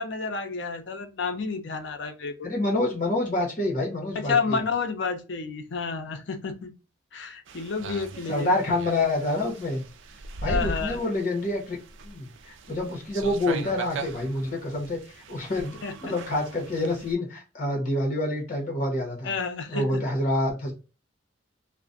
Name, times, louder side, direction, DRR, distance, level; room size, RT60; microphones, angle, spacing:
voice 1, 0.0-2.5 4.1-6.7 7.1-8.6 10.4-11.0 15.8-15.9 19.2-20.0, left 5 dB, 70° left, 7 dB, 0.5 m, -30 dB
voice 2, 2.4-4.6 8.3-9.8 10.4-11.8 12.0-19.3 19.7-20.7, left 1 dB, 45° left, 0 dB, 0.9 m, -27 dB
sound 1, 7.5-17.1, right 2 dB, 85° right, 0.4 m, -39 dB
2.4 x 2.1 x 2.5 m, 0.32 s
head